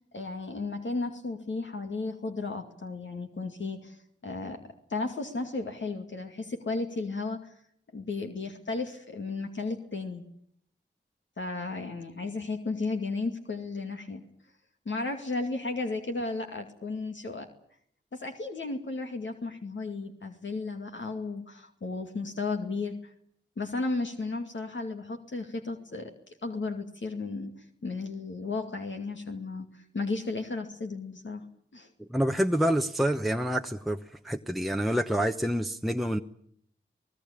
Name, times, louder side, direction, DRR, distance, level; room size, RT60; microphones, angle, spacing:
voice 1, 0.1-4.0 4.2-7.5 7.9-10.2 11.4-14.2 14.9-17.5 18.1-23.0 23.6-26.1 26.4-27.5 27.8-31.4 31.7-31.9, left 3 dB, 65° left, 2.4 m, -34 dB
voice 2, 32.0-36.2, equal, ahead, 1.0 m, -27 dB
28.0 x 18.5 x 8.7 m
cardioid pair, 45°, 21 cm